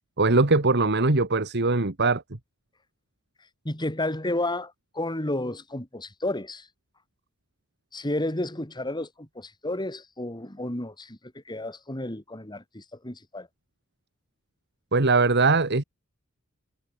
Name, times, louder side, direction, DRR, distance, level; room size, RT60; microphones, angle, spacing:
voice 1, 0.2-2.2 14.9-15.8, right 3 dB, 55° right, 1.8 m, -21 dB
voice 2, 3.6-6.7 7.9-11.2 11.5-13.5, left 1 dB, 20° left, 3.3 m, -31 dB
head